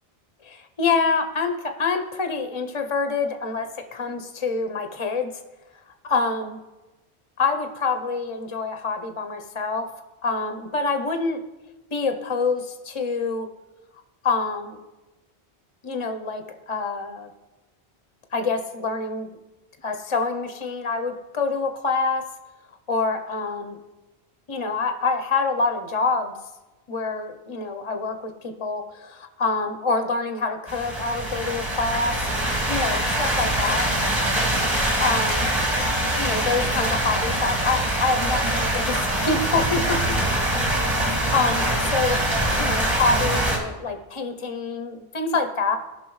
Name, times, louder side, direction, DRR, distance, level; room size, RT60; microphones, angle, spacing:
voice 1, 0.4-5.3 6.0-6.6 7.4-11.4 11.9-13.5 14.2-14.8 15.8-17.3 18.3-19.3 19.8-22.3 22.9-23.8 24.5-26.4 26.9-32.2 32.7-33.9 35.0-35.5 36.2-40.2 40.8-42.2 42.5-45.8, left 4 dB, 35° left, 7 dB, 0.6 m, -26 dB
sound 1, 30.7-43.6, right 1 dB, 25° right, 2.0 m, -24 dB
17.0 x 5.7 x 3.1 m, 1.1 s
omnidirectional pair, 1.0 m